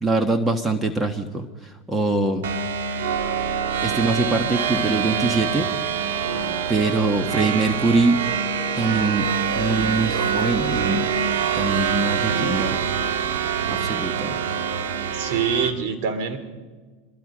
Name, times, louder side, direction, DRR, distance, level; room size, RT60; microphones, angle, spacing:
voice 1, 0.0-2.4 3.8-5.7 6.7-8.2 8.7-9.3 9.6-11.1 11.5-12.8 13.7-14.4, right 3 dB, 15° right, 7 dB, 1.5 m, -23 dB
sound 1, 2.4-15.7, right 7 dB, 85° right, 1.6 m, -25 dB
voice 2, 15.1-16.4, right 6 dB, 65° right, 9 dB, 3.1 m, -26 dB
24.0 x 22.5 x 5.1 m, 1.3 s
supercardioid pair, 115°, 0 cm